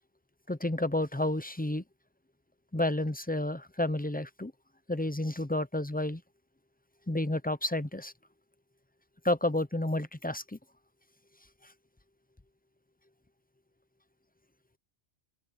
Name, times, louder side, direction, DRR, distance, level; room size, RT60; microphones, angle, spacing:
voice 1, 0.5-1.8 2.7-4.5 4.9-6.2 7.1-8.1 9.2-10.6, left 1 dB, 10° left, 0.5 m, -30 dB
omnidirectional pair, 1.1 m